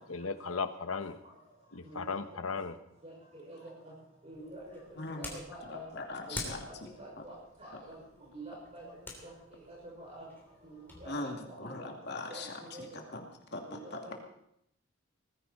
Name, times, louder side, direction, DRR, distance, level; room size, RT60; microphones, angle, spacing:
voice 1, 0.1-1.2 1.7-2.8, left 4 dB, 85° left, 9 dB, 1.1 m, -36 dB
voice 2, 1.8-2.1 3.0-3.6 4.2-4.6 5.2-5.8 6.3-6.5 7.0-7.3 7.6-8.0 8.3-8.9 10.0-10.3 10.6-11.9 12.3-12.4 12.7-13.0 13.6-14.1, right 1 dB, 30° right, -3 dB, 5.8 m, -47 dB
sound 1, 4.3-11.1, left 2 dB, 10° left, 3.1 m, -48 dB
voice 3, 5.0-6.9 11.1-12.9 13.1-13.2 13.5-14.1, left 2 dB, 50° left, 2 dB, 2.4 m, -41 dB
19.0 x 15.5 x 4.2 m, 0.75 s
head